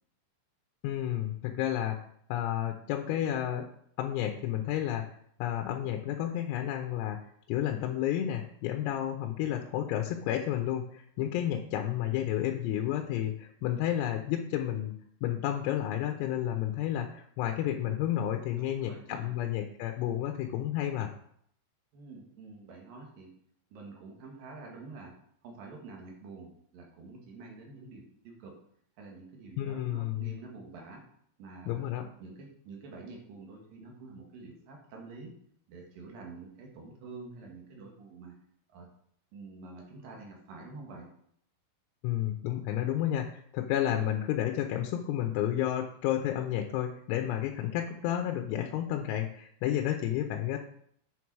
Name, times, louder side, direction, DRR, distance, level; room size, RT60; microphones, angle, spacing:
voice 1, 0.8-3.7 4.0-5.1 5.4-7.2 7.5-15.0 15.2-21.1 29.5-30.3 31.7-32.1 42.0-50.6, left 11 dB, 90° left, 3 dB, 3.5 m, -31 dB
voice 2, 18.5-19.3 21.9-23.3 23.7-25.1 25.4-28.6 29.0-31.0 31.4-31.9 32.2-35.3 35.7-38.3 38.7-38.9 39.3-41.1, right 3 dB, 60° right, 0 dB, 2.5 m, -47 dB
8.4 x 6.6 x 4.7 m, 0.67 s
omnidirectional pair, 6.0 m